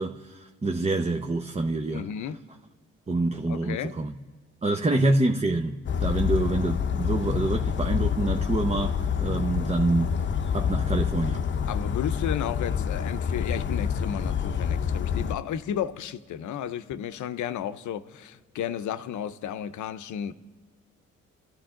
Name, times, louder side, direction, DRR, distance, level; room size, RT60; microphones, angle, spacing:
voice 1, 0.0-2.1 3.1-4.1 4.6-10.1 10.5-11.5, right 2 dB, 20° right, 0.9 m, -26 dB
voice 2, 1.9-2.4 3.5-4.0 11.7-20.3, left 9 dB, 75° left, 0.8 m, -33 dB
Bird vocalization bird call bird song, 5.9-15.4, left 7 dB, 40° left, 0.8 m, -27 dB
27.5 x 13.5 x 3.8 m
cardioid pair, 90°, 30 cm